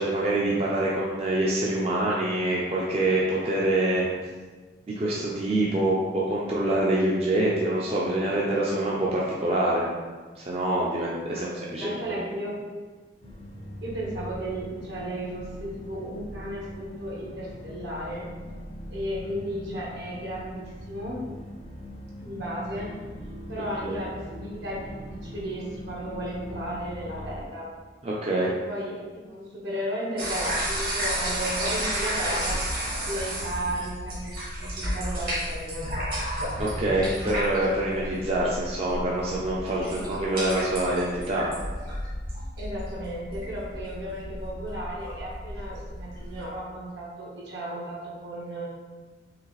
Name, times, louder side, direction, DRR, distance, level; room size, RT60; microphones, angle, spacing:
voice 1, 0.0-4.1 5.0-9.9 10.4-11.9 23.6-24.0 28.0-28.5 36.6-41.5, right 1 dB, 35° right, -5 dB, 0.5 m, -25 dB
voice 2, 11.8-12.6 13.8-18.2 18.9-21.2 22.2-22.9 23.5-27.7 28.3-32.6 33.1-35.9 39.8-40.1 42.6-48.7, equal, 75° right, -5 dB, 1.4 m, -34 dB
sound 1, 13.2-27.4, left 1 dB, 35° left, 0.5 m, -41 dB
sound 2, 30.2-46.4, equal, 55° right, 1.4 m, -32 dB
4.8 x 3.3 x 3.2 m, 1.4 s
head